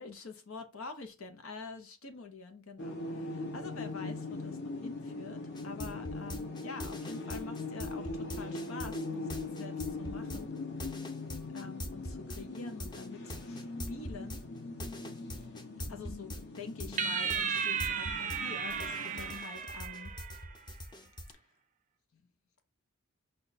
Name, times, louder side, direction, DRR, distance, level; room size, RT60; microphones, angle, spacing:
voice 1, 0.0-10.5 11.5-14.4 15.9-20.1 22.1-22.2, left 4 dB, 90° left, 0.8 m, -46 dB
sound 1, 2.8-19.4, left 3 dB, 55° left, 0.9 m, -41 dB
sound 2, 5.5-18.4 18.7-21.3, equal, 20° left, 0.6 m, -42 dB
sound 3, 17.0-20.5, right 6 dB, 40° right, 0.5 m, -34 dB
5.1 x 2.3 x 4.0 m
head